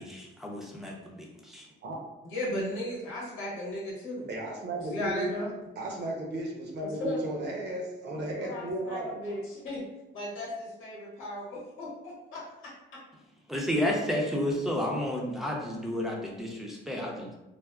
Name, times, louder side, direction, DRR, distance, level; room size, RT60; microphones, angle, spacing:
voice 1, 0.0-1.7 13.5-17.3, left 1 dB, ahead, -3 dB, 0.6 m, -31 dB
voice 2, 2.2-4.3 4.8-5.5 6.9-7.2 8.2-9.8 10.1-12.7, left 1 dB, 90° left, -5 dB, 1.1 m, -36 dB
voice 3, 4.3-5.4 5.8-9.2, right 1 dB, 60° right, 0 dB, 0.7 m, -34 dB
3.5 x 2.0 x 2.2 m, 1.0 s
cardioid pair, 90°, 20 cm